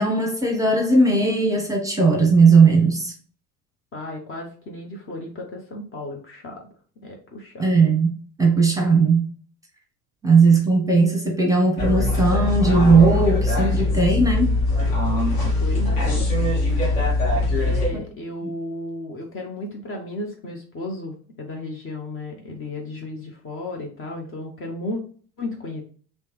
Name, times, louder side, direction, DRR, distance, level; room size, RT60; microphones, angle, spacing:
voice 1, 0.0-3.1 7.6-9.3 10.2-14.5, right 4 dB, 5° right, 1 dB, 1.0 m, -18 dB
voice 2, 3.9-6.6 7.0-7.6 15.6-16.3 17.6-25.0 25.4-25.8, left 1 dB, 30° left, 1 dB, 0.8 m, -34 dB
sound 1, 11.8-17.9, left 2 dB, 50° left, 1.5 m, -21 dB
3.3 x 3.1 x 3.0 m, 0.42 s
figure-of-eight pair, 65°, 45 cm